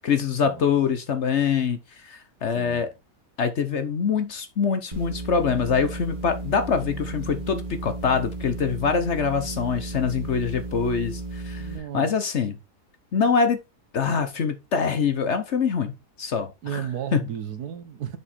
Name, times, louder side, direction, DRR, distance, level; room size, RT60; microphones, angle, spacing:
voice 1, 0.0-2.9 3.4-11.7 11.9-12.6 13.1-13.6 13.9-16.8 17.1-17.3, left 6 dB, 55° left, 1.0 m, -24 dB
voice 2, 2.5-2.9 11.6-12.1 16.6-18.2, right 9 dB, 75° right, 1.6 m, -34 dB
sound 1, 4.9-11.8, right 3 dB, 35° right, 1.5 m, -34 dB
7.1 x 5.0 x 4.2 m
omnidirectional pair, 1.7 m